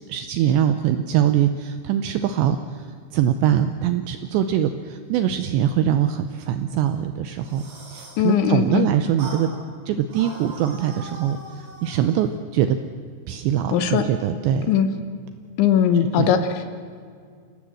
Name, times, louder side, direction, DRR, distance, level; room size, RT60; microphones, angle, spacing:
voice 1, 0.1-7.6 7.9-9.5 9.9-12.8 13.3-14.7 16.1-16.5, right 10 dB, 80° right, 9 dB, 2.6 m, -23 dB
sound 1, 7.3-8.3 9.2-9.5 10.1-12.0, right 2 dB, 55° right, 6.9 m, -40 dB
voice 2, 8.2-8.9 13.7-14.0 14.7-14.9 15.6-16.7, left 9 dB, 75° left, 9 dB, 3.2 m, -19 dB
29.0 x 17.0 x 7.8 m, 2.1 s
omnidirectional pair, 5.8 m